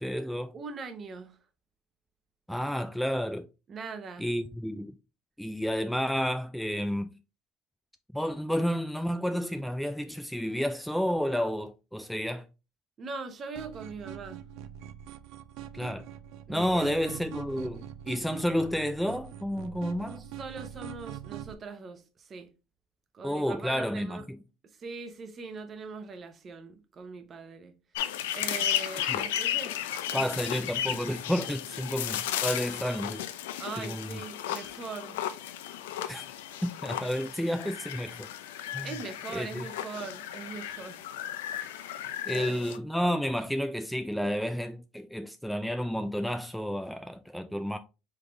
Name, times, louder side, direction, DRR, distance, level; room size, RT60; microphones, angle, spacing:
voice 1, 0.0-0.5 2.5-3.5 4.2-4.9 5.4-7.1 8.1-12.5 15.7-16.1 16.5-20.2 23.2-24.2 29.1-29.2 30.1-33.2 33.8-34.1 36.1-36.3 36.6-38.3 38.7-38.9 39.3-39.6 42.3-47.8, equal, ahead, 0.3 m, -31 dB
voice 2, 0.5-1.4 3.7-4.3 13.0-14.4 16.5-16.9 20.2-22.5 23.1-24.2 24.8-27.7 28.3-29.8 30.1-30.4 33.6-35.2 38.8-41.0 42.3-42.8, right 4 dB, 35° right, 0.8 m, -41 dB
sound 1, 13.5-21.5, right 11 dB, 65° right, 0.4 m, -43 dB
sound 2, 27.9-42.8, left 11 dB, 90° left, 0.4 m, -34 dB
3.8 x 3.4 x 3.3 m
supercardioid pair, 100°, 0 cm